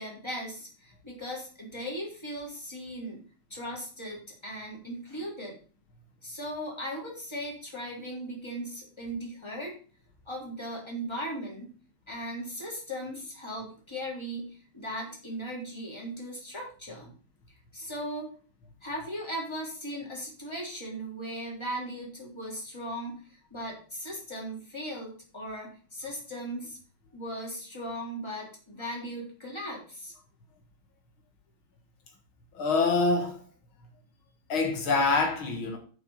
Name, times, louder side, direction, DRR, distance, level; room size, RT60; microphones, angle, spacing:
voice 1, 0.0-3.2 3.5-5.6 6.2-9.7 10.3-11.7 12.1-17.1 17.7-18.3 18.8-26.8 27.1-30.1, equal, 10° left, 3.3 m, -38 dB
voice 2, 32.5-33.4 34.5-35.8, left 3 dB, 80° left, 2.4 m, -25 dB
6.9 x 5.9 x 7.2 m
omnidirectional pair, 2.3 m